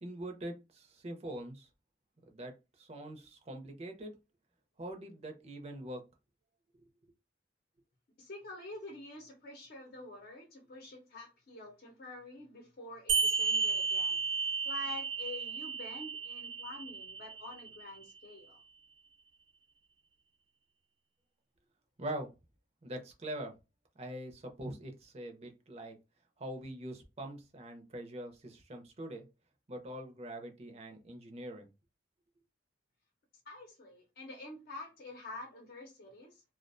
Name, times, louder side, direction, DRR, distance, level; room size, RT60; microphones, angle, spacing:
voice 1, 0.0-1.7 2.3-2.5 2.8-4.1 4.8-6.0 22.0-22.3 22.8-23.5 24.0-25.9 26.4-29.3 29.7-31.7, right 1 dB, 35° right, 0.6 m, -43 dB
voice 2, 8.2-14.2 14.6-18.6 33.5-36.4, left 2 dB, 55° left, 0.7 m, -47 dB
sound 1, 13.1-18.1, right 5 dB, 90° right, 0.7 m, -33 dB
2.3 x 2.1 x 2.5 m
head